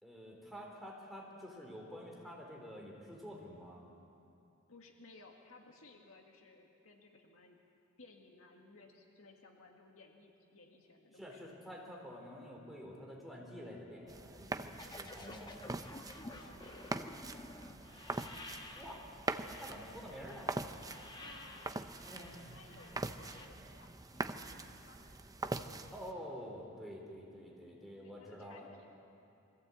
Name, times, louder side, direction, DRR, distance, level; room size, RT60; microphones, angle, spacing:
voice 1, 0.0-3.9 11.1-15.6 18.8-19.0 19.5-20.5 21.9-22.4 25.9-28.7, equal, ahead, -2 dB, 3.8 m, -49 dB
voice 2, 4.7-7.6 8.0-11.5 16.3-16.9 21.2-21.8 22.4-25.5 28.0-28.9, left 3 dB, 75° left, 2 dB, 2.0 m, -60 dB
sound 1, 14.1-26.1, right 2 dB, 15° right, 0.6 m, -43 dB
sound 2, 14.7-23.5, left 2 dB, 20° left, 1.3 m, -52 dB
22.5 x 15.5 x 8.5 m, 2.6 s
head